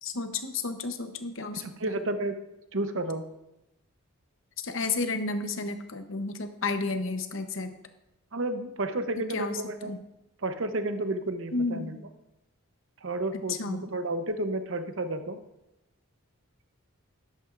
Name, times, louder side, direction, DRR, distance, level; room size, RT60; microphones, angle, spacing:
voice 1, 0.0-2.0 4.6-7.7 9.3-9.6 9.8-10.0 11.5-12.0 13.6-13.8, left 3 dB, 60° left, 8 dB, 0.9 m, -32 dB
voice 2, 1.5-2.4 2.7-3.2 8.3-9.9 10.4-12.0 13.0-15.4, right 2 dB, 60° right, 8 dB, 0.8 m, -31 dB
12.0 x 11.5 x 2.5 m, 0.90 s
head